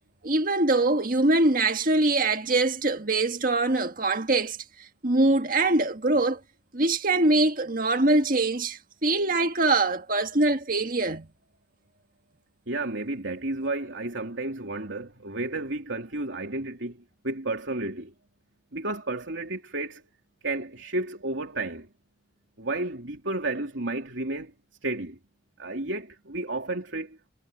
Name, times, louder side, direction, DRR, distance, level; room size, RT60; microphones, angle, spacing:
voice 1, 0.2-4.6 5.0-6.4 6.7-11.3, right 2 dB, 45° right, 1.7 m, -23 dB
voice 2, 12.7-17.0 17.2-18.1 18.7-20.0 20.4-21.9 22.6-24.5 24.8-25.2 25.6-27.2, right 2 dB, 80° right, 3.3 m, -32 dB
head